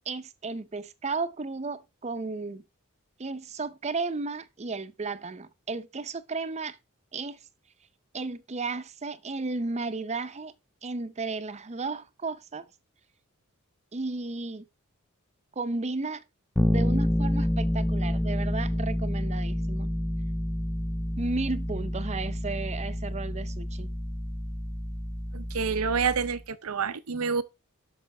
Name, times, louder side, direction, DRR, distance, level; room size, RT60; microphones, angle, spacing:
voice 1, 0.1-2.6 3.2-6.8 7.1-7.4 8.1-10.5 10.8-12.7 13.9-14.7 15.6-16.2 16.6-19.9 21.2-23.9, right 3 dB, 30° right, 0.6 m, -34 dB
Bass guitar, 16.6-26.4, equal, 5° left, 0.3 m, -29 dB
voice 2, 25.3-27.4, right 6 dB, 90° right, 0.7 m, -28 dB
8.3 x 6.3 x 3.4 m
head